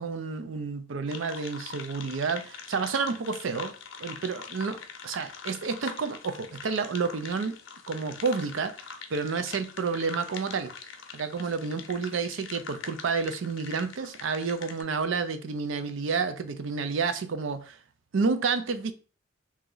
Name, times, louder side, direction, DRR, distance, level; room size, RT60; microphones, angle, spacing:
voice 1, 0.0-3.7 4.0-7.6 7.9-10.7 11.1-17.8 18.1-18.9, right 5 dB, 75° right, 0.5 m, -30 dB
sound 1, 1.1-14.8, left 6 dB, 75° left, 0.6 m, -43 dB
3.0 x 2.8 x 3.7 m
head